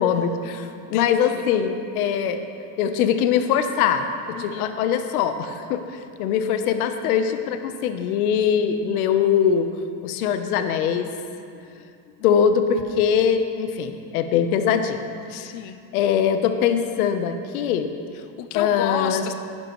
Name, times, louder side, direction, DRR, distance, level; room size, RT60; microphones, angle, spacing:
voice 1, 0.0-2.4 2.8-9.7 10.0-11.1 12.2-15.0 15.9-17.9 18.5-19.2, left 8 dB, 85° left, 8 dB, 1.0 m, -22 dB
voice 2, 0.7-1.5 4.4-4.8 12.2-12.4 15.3-15.8 18.1-19.3, left 10 dB, 45° left, 9 dB, 0.5 m, -32 dB
14.5 x 12.0 x 3.1 m, 2.5 s
cardioid pair, 155°, 42 cm